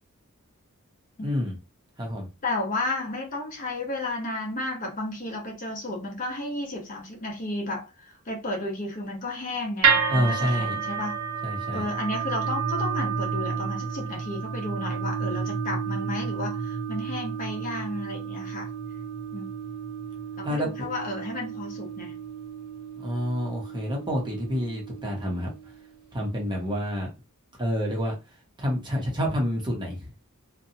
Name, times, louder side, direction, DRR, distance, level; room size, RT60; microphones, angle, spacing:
voice 1, 1.2-1.6 2.0-2.3 10.1-10.8 11.4-11.9 20.4-20.7 23.0-25.5 26.1-27.1 27.6-28.1 28.6-30.1, equal, 20° right, 0.7 m, -28 dB
voice 2, 2.4-11.1 11.7-18.7 19.3-19.5 20.4-22.1, left 2 dB, 40° left, 0.9 m, -33 dB
sound 1, 9.8-26.0, right 6 dB, 75° right, 0.5 m, -31 dB
2.7 x 2.2 x 2.7 m
head